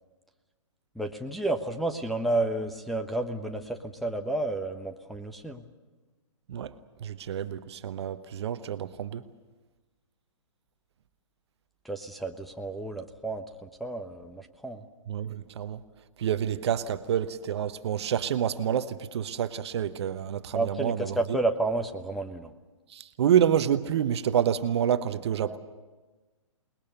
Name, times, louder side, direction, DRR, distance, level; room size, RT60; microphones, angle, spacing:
voice 1, 0.9-5.6 11.8-14.9 20.5-22.5 25.4-25.6, right 2 dB, ahead, 1.1 m, -31 dB
voice 2, 7.0-9.2 15.1-15.8 16.2-21.4 22.9-25.6, right 9 dB, 55° right, 1.1 m, -28 dB
27.5 x 20.5 x 6.9 m
figure-of-eight pair, 125°, 17 cm